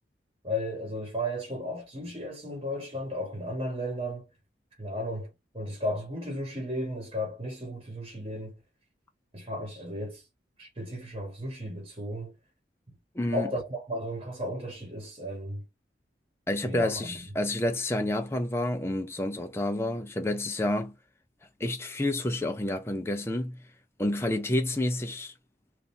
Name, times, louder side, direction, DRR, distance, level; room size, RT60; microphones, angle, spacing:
voice 1, 0.4-4.3 4.8-8.6 9.3-10.2 10.6-12.3 13.3-15.6 16.6-17.2, equal, 30° right, 1.3 m, -34 dB
voice 2, 13.1-13.5 16.5-21.0 21.6-23.6 24.0-25.3, left 1 dB, 15° left, 0.5 m, -29 dB
3.3 x 2.6 x 4.1 m
head